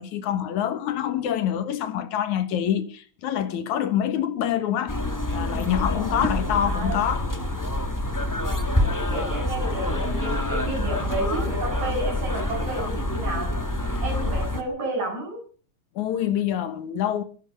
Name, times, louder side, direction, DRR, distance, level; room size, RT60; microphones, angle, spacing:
voice 1, 0.0-5.0 5.3-7.3 16.0-17.2, left 10 dB, 85° left, 2.8 m, -26 dB
sound 1, 4.9-14.6, left 1 dB, 15° left, 0.7 m, -26 dB
voice 2, 6.6-7.0 9.1-13.5 14.0-15.4, right 2 dB, 75° right, 8.7 m, -31 dB
21.5 x 12.0 x 5.3 m
omnidirectional pair, 3.3 m